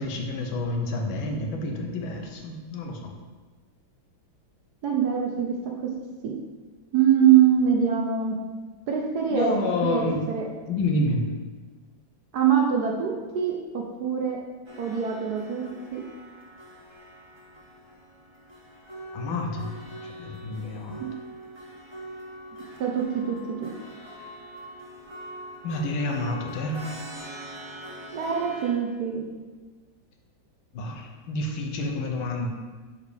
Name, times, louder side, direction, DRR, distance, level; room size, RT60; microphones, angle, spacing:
voice 1, 0.0-3.1 9.3-10.2 10.7-11.2 19.1-19.7 20.2-21.0 25.6-27.0 30.7-32.5, left 2 dB, 85° left, 2 dB, 1.6 m, -29 dB
voice 2, 4.8-5.5 5.8-5.9 6.2-6.3 6.9-8.4 8.9-9.5 9.8-10.4 12.3-14.4 14.8-15.6 15.9-16.0 21.0-21.1 22.8-23.7 28.1-29.2, right 8 dB, 65° right, 0 dB, 1.0 m, -23 dB
sound 1, 14.7-28.7, equal, 45° right, 0.3 m, -43 dB
6.8 x 5.0 x 3.3 m, 1.3 s
omnidirectional pair, 2.2 m